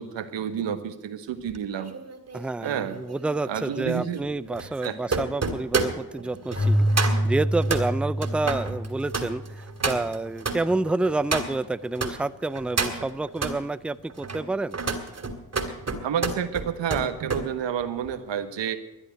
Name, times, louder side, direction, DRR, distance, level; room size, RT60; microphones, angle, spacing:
voice 1, 0.0-1.9 2.6-3.0 3.4-4.2 4.6-5.0 16.0-18.8, right 8 dB, 75° right, 10 dB, 1.4 m, -30 dB
sound 1, 1.5-12.1 12.5-13.6 14.1-17.5 17.8-18.1, right 4 dB, 35° right, 2.5 m, -31 dB
voice 2, 2.3-14.8, right 2 dB, 5° right, 17 dB, 0.4 m, -29 dB
Keyboard (musical), 6.6-10.1, equal, 35° left, 6.2 m, -26 dB
12.5 x 9.9 x 9.2 m, 1.0 s
supercardioid pair, 50°, 44 cm